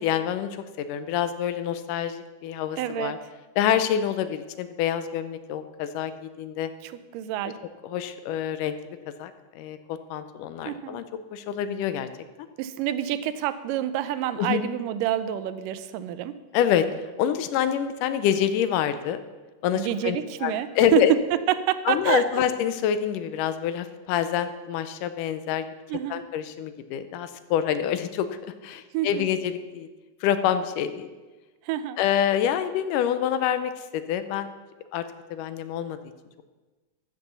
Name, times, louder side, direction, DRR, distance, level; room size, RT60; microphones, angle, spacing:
voice 1, 0.0-3.2 3.6-6.7 7.8-8.7 9.2-11.0 11.3-12.1 14.4-14.6 16.5-16.9 17.2-19.2 19.6-20.2 20.4-21.1 21.9-25.7 26.1-28.3 28.6-29.9 30.2-31.1 32.0-34.5 34.9-35.0 35.3-36.0, left 9 dB, 80° left, 11 dB, 2.2 m, -26 dB
voice 2, 2.8-3.3 6.8-7.6 10.7-11.0 12.6-16.4 19.7-21.1 21.5-22.4 25.9-26.2 28.9-29.3 31.6-32.0, right 11 dB, 90° right, 13 dB, 2.3 m, -28 dB
14.0 x 6.9 x 6.8 m, 1.2 s
omnidirectional pair, 3.8 m